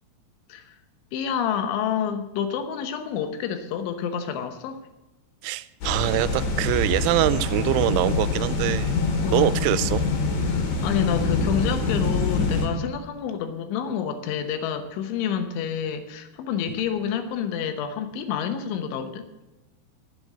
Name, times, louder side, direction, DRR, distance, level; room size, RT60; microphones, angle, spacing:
voice 1, 1.1-4.8 9.2-9.7 10.5-19.3, left 8 dB, 80° left, 8 dB, 3.4 m, -28 dB
voice 2, 5.4-8.9 9.3-10.1, right 15 dB, 90° right, 15 dB, 3.0 m, -24 dB
sound 1, 5.8-12.7, left 3 dB, 55° left, 3.3 m, -25 dB
11.0 x 7.8 x 8.0 m, 1.0 s
omnidirectional pair, 5.5 m